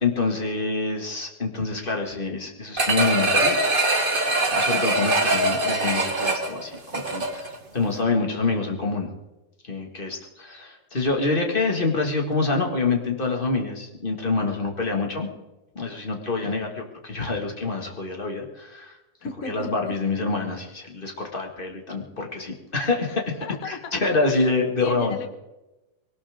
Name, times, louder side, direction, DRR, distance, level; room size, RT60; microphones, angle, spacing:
voice 1, 0.0-3.5 4.5-9.1 9.7-15.3 15.7-19.0 19.4-23.4 23.6-25.2, left 3 dB, 20° left, 1 dB, 1.5 m, -26 dB
sound 1, 2.8-7.6 8.0-8.1, right 2 dB, 75° right, 0.5 m, -23 dB
voice 2, 19.2-19.7 23.4-25.3, left 5 dB, 75° left, 7 dB, 0.7 m, -35 dB
21.5 x 18.5 x 3.6 m, 1.0 s
omnidirectional pair, 3.5 m